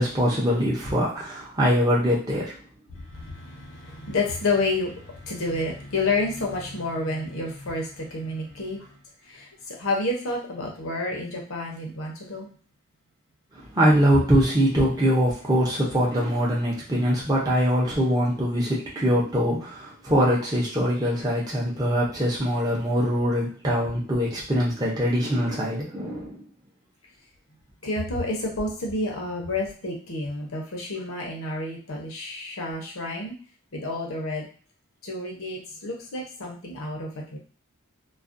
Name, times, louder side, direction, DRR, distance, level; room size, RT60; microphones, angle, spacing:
voice 1, 0.0-2.6 13.5-26.4, equal, 15° right, -6 dB, 0.5 m, -23 dB
voice 2, 3.1-8.8 9.3-12.5 27.8-33.3 33.7-34.5 35.0-37.4, left 2 dB, 70° left, 0 dB, 0.7 m, -29 dB
2.3 x 2.1 x 2.5 m, 0.41 s
head